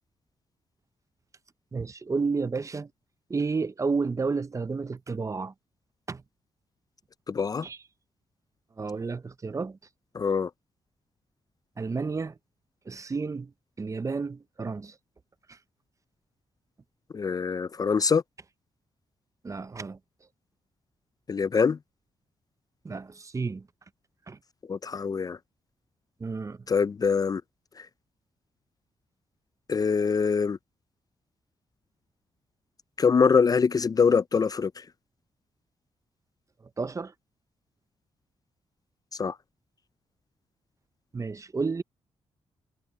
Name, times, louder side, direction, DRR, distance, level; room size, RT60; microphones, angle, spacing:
voice 1, 1.7-2.9 3.3-5.5 6.1-6.2 7.6-7.8 8.8-9.8 11.8-12.3 12.9-13.5 13.8-14.9 15.5-15.6 19.4-20.0 22.8-23.7 24.3-24.4 26.2-26.6 36.8-37.1 41.1-41.8, right 4 dB, 30° right, 0.6 m, -31 dB
voice 2, 7.3-7.7 10.1-10.5 17.1-18.2 21.3-21.8 24.7-25.4 26.7-27.4 27.8-27.9 29.7-30.6 33.0-34.8 39.2-39.4, left 5 dB, 35° left, 0.4 m, -24 dB
cardioid pair, 90°, 11 cm